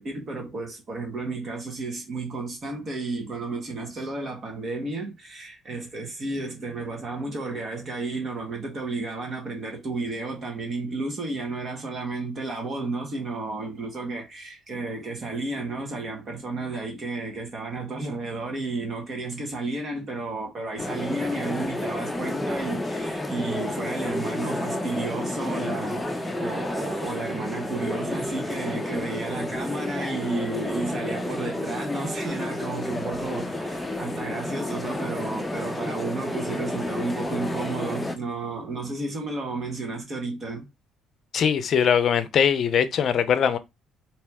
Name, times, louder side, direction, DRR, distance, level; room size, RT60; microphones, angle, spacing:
voice 1, 0.0-40.7, right 3 dB, 35° right, 1.5 m, -32 dB
sound 1, 20.8-38.2, left 1 dB, 10° left, 0.7 m, -30 dB
voice 2, 41.3-43.6, left 8 dB, 50° left, 0.6 m, -21 dB
4.2 x 3.0 x 3.5 m
cardioid pair, 130°, 0 cm